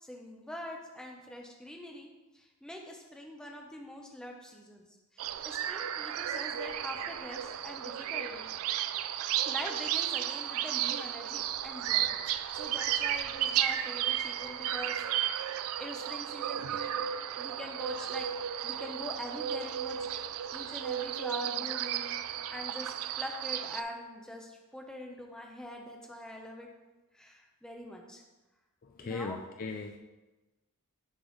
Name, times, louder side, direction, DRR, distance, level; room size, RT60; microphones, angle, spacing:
voice 1, 0.0-2.1 2.3-4.8 5.1-8.5 9.5-15.0 15.3-17.0 17.4-18.3 18.6-20.1 20.5-26.7 27.1-28.2 29.0-29.4, equal, 5° left, 0 dB, 0.7 m, -44 dB
sound 1, 5.2-23.8, right 10 dB, 65° right, 0.3 m, -33 dB
voice 2, 28.8-30.0, left 4 dB, 40° left, 4 dB, 0.4 m, -38 dB
9.8 x 3.7 x 3.2 m, 1.1 s
head